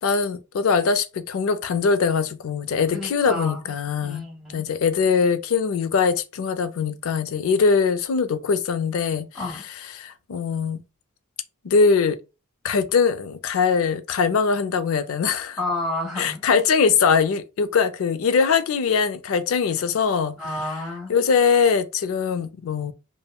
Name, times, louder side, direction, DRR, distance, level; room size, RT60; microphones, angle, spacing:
voice 1, 0.0-4.2 4.5-9.3 10.0-10.8 11.6-12.2 12.6-15.6 16.2-20.4 21.1-22.9, left 5 dB, 60° left, 0.3 m, -22 dB
voice 2, 2.9-3.6 4.0-4.6 9.3-9.6 15.6-16.4 20.4-21.1, left 2 dB, ahead, 1.1 m, -30 dB
3.6 x 2.0 x 2.2 m
head